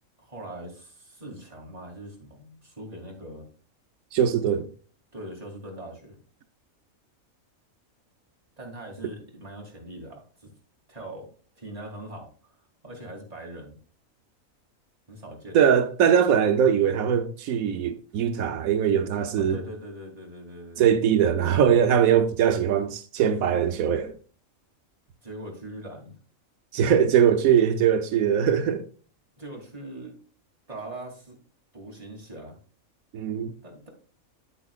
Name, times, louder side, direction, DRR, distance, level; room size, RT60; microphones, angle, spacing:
voice 1, 0.2-3.5 5.1-6.2 8.6-10.5 10.9-12.5 12.8-13.8 15.1-15.6 19.4-20.9 25.2-26.1 29.4-30.2 30.7-31.4 31.7-32.6 33.6-33.9, right 1 dB, 25° right, 2.9 m, -41 dB
voice 2, 4.1-4.7 15.5-19.6 20.8-24.1 26.7-28.8 33.1-33.5, right 8 dB, 90° right, 1.2 m, -21 dB
9.2 x 8.6 x 2.3 m
omnidirectional pair, 1.4 m